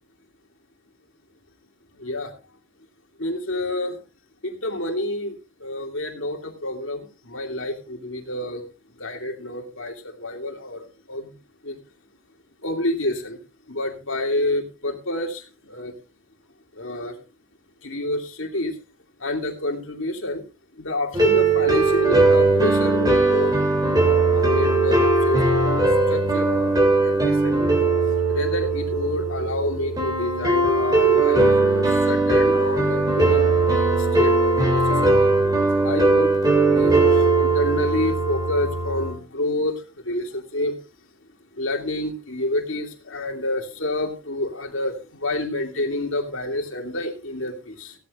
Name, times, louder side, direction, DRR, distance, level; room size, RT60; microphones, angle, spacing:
voice 1, 2.0-2.3 3.2-4.0 4.4-8.6 9.0-11.3 11.6-11.8 12.6-13.4 13.7-15.9 16.8-17.1 17.8-18.8 19.2-20.4 20.8-23.5 24.2-27.8 28.3-33.5 33.9-35.3 35.8-40.8 41.6-47.9, left 1 dB, 60° left, 2 dB, 2.9 m, -28 dB
sound 1, 21.1-39.2, right 3 dB, 15° right, 3.3 m, -19 dB
16.5 x 13.0 x 2.6 m, 0.30 s
head